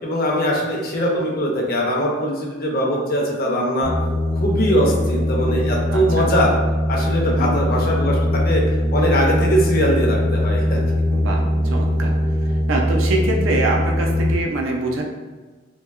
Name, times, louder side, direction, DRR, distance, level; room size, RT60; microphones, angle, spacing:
voice 1, 0.0-3.9 4.4-6.5 6.9-8.6 8.9-10.8, equal, 50° left, -2 dB, 0.5 m, -21 dB
sound 1, 3.8-14.4, equal, 15° right, 0.3 m, -21 dB
voice 2, 5.9-6.3 7.2-7.5 11.1-12.2 12.4-15.0, right 2 dB, 85° right, 1 dB, 0.4 m, -24 dB
2.7 x 2.2 x 2.3 m, 1.3 s
head